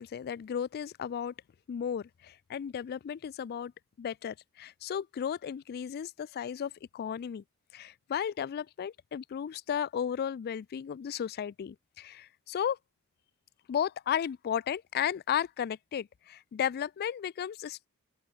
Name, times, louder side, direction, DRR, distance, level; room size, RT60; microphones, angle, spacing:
voice 1, 0.0-1.3 1.7-3.7 4.0-7.4 7.7-12.8 13.7-17.9, left 8 dB, 45° left, 0.3 m, -34 dB
open air
head